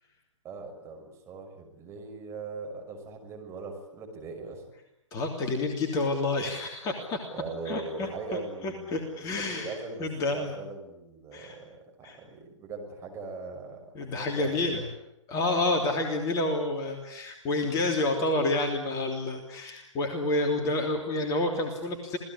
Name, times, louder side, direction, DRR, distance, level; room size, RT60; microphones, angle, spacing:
voice 1, 0.4-4.6 7.3-14.9, right 3 dB, 15° right, 1 dB, 6.2 m, -40 dB
voice 2, 5.1-7.3 7.7-8.1 8.6-10.5 11.3-11.6 12.0-12.2 13.9-14.8 15.3-22.2, left 2 dB, 20° left, 4 dB, 3.2 m, -29 dB
28.0 x 19.0 x 9.9 m, 0.85 s
figure-of-eight pair, 125°, 16 cm